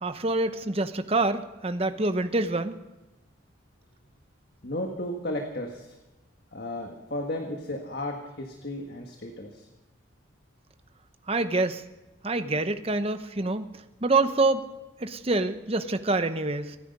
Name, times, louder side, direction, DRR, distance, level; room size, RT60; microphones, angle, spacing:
voice 1, 0.0-2.8 11.3-11.8 12.2-13.7 14.0-14.7 15.0-16.8, right 2 dB, 30° right, 10 dB, 0.8 m, -26 dB
voice 2, 4.6-5.9 6.5-9.7, left 1 dB, 50° left, 2 dB, 1.6 m, -34 dB
26.0 x 9.9 x 5.4 m, 1.0 s
head